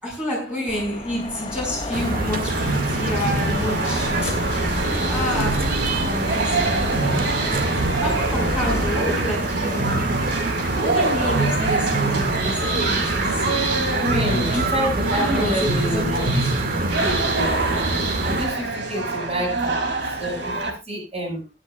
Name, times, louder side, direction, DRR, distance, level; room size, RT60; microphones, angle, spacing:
voice 1, 0.0-4.5 5.0-7.4 7.9-10.5 10.7-13.5 14.1-14.7 15.1-16.5, equal, 5° right, 5.5 m, -29 dB
sound 1, 0.7-8.9, left 1 dB, 30° left, 2.5 m, -32 dB
sound 2, 1.9-18.5, right 2 dB, 55° right, 2.1 m, -26 dB
sound 3, 2.5-20.7, right 3 dB, 70° right, 3.0 m, -26 dB
voice 2, 13.9-17.6 18.2-19.9 20.2-21.4, equal, 35° right, 6.3 m, -28 dB
21.5 x 9.9 x 2.4 m
head